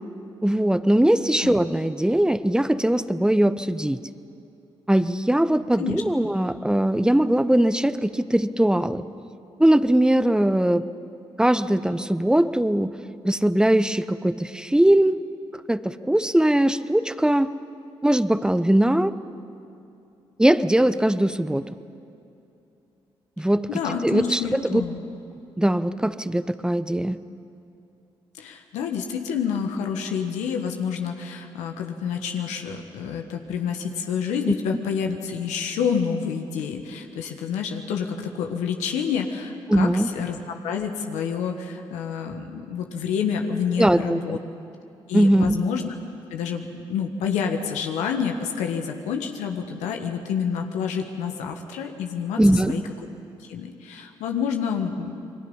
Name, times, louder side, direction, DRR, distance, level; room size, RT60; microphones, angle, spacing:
voice 1, 0.4-4.0 4.9-9.0 9.6-10.9 11.4-12.9 13.2-15.2 15.7-17.5 18.0-19.1 20.4-21.7 23.4-24.8 25.6-27.2 39.7-40.1 43.8-44.4 45.1-45.6 52.4-52.8, right 1 dB, 5° right, 13 dB, 1.0 m, -20 dB
voice 2, 23.7-25.0 28.3-44.4 45.1-45.9 46.3-46.6 46.9-52.8 53.4-55.2, left 7 dB, 85° left, 4 dB, 1.6 m, -28 dB
28.5 x 22.0 x 5.6 m, 2.7 s
supercardioid pair, 50°, 12 cm